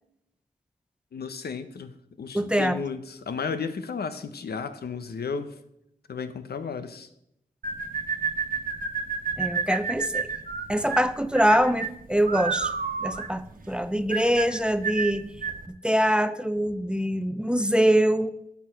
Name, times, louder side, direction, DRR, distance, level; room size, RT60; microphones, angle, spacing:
voice 1, 1.1-5.5 6.1-7.1, left 5 dB, 90° left, 10 dB, 0.9 m, -33 dB
voice 2, 2.3-2.8 9.4-10.3 10.7-12.7 13.0-15.2 15.8-18.3, equal, 5° right, 12 dB, 0.6 m, -24 dB
sound 1, 7.6-15.7, right 5 dB, 65° right, 1.3 m, -30 dB
12.5 x 8.4 x 5.7 m, 0.79 s
wide cardioid pair, 120°, 16 cm